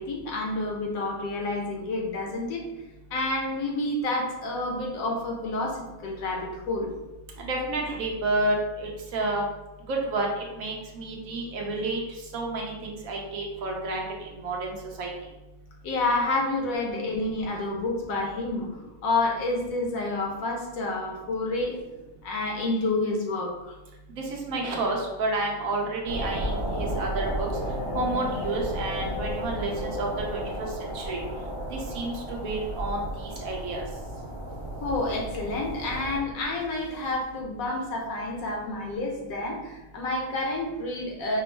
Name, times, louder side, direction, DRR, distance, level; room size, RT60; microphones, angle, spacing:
voice 1, 0.0-2.6 3.1-6.9 15.8-18.7 19.0-21.7 22.2-23.8 34.8-41.4, left 2 dB, 80° left, 0 dB, 1.3 m, -29 dB
voice 2, 7.4-9.5 9.9-12.0 12.3-15.1 24.2-27.5 27.9-31.2 31.7-33.8, right 2 dB, 80° right, 0 dB, 1.2 m, -30 dB
sound 1, 26.1-36.2, right 1 dB, 45° right, 0.8 m, -34 dB
sound 2, 27.5-32.9, left 2 dB, 60° left, 0.9 m, -37 dB
5.2 x 2.1 x 3.2 m, 1.0 s
omnidirectional pair, 1.5 m